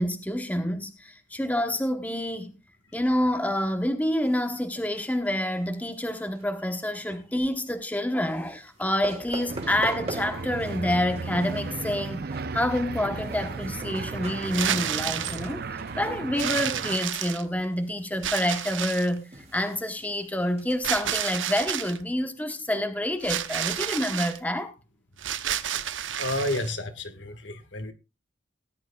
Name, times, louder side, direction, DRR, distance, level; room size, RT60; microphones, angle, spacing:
voice 1, 0.0-2.5 2.9-12.2 12.5-15.6 16.0-24.7, left 1 dB, 10° left, 1.0 m, -28 dB
sound 1, 4.2-6.4 6.8-7.2 8.2-8.7 9.0-10.8 11.1-20.8, right 2 dB, 35° right, 2.4 m, -43 dB
sound 2, 9.5-17.0, right 4 dB, 55° right, 0.6 m, -35 dB
sound 3, 14.4-15.5 16.4-17.6 18.2-19.2 20.8-22.0 23.2-24.4 25.2-26.7, right 10 dB, 85° right, 0.8 m, -30 dB
voice 2, 25.7-27.9, left 1 dB, 75° left, 1.7 m, -32 dB
18.0 x 11.0 x 2.3 m
head